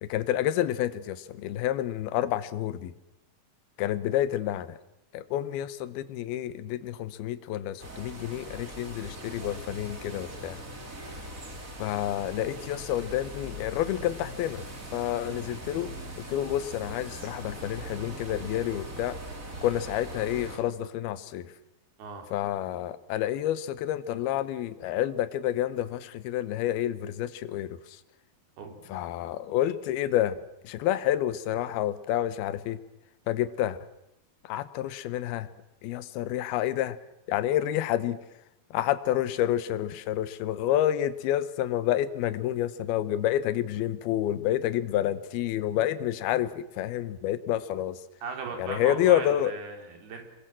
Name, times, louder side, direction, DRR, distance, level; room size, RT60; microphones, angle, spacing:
voice 1, 0.0-2.9 3.8-4.8 5.1-10.6 11.8-14.6 14.9-15.9 16.3-19.2 19.6-21.5 22.3-27.8 28.9-30.4 30.6-32.8 33.3-33.8 34.4-35.5 35.8-37.0 37.3-38.2 38.7-48.0 48.6-49.5, left 12 dB, 80° left, 14 dB, 2.9 m, -29 dB
sound 1, 7.8-20.6, right 1 dB, 20° right, 3.3 m, -41 dB
voice 2, 28.6-28.9 48.2-50.2, right 4 dB, 80° right, 4 dB, 5.5 m, -38 dB
27.0 x 22.0 x 7.5 m, 0.90 s
omnidirectional pair, 4.4 m